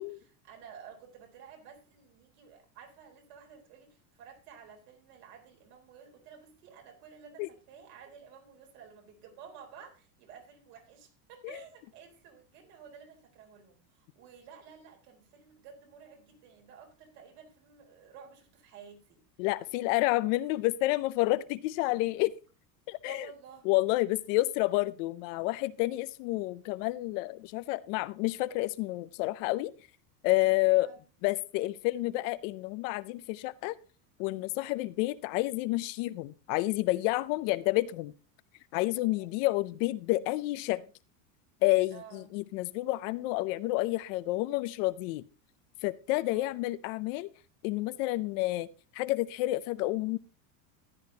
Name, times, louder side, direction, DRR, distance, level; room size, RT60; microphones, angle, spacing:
voice 1, 0.0-19.2 23.0-23.7 30.8-31.0 39.0-39.3 41.9-42.3 46.3-46.6, right 7 dB, 65° right, 4.0 m, -52 dB
voice 2, 19.4-22.3 22.9-23.3 23.7-29.7 30.2-30.9 31.2-33.7 34.2-38.1 38.7-40.8 41.6-45.2 45.8-47.3 47.6-48.7 48.9-50.2, left 19 dB, 50° left, 0.5 m, -29 dB
14.0 x 10.0 x 2.8 m
supercardioid pair, 145°, 49 cm